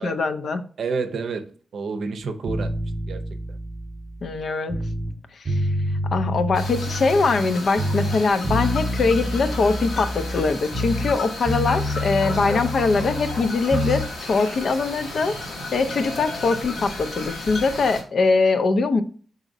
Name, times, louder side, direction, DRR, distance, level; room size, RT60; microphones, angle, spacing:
voice 1, 0.0-0.6 4.2-4.8 5.4-5.7 6.1-15.4 15.7-19.0, left 4 dB, 50° left, 9 dB, 0.5 m, -22 dB
voice 2, 0.8-2.7 3.1-3.2 3.5-3.6 11.9-12.5, right 4 dB, 60° right, 8 dB, 0.6 m, -30 dB
sound 1, 2.5-5.1 5.5-7.5 7.8-11.2 11.5-14.1, equal, 25° right, 0.9 m, -27 dB
sound 2, 6.5-18.0, left 2 dB, 85° left, 2.0 m, -34 dB
4.9 x 4.0 x 2.6 m, 0.42 s
wide cardioid pair, 175°, 0 cm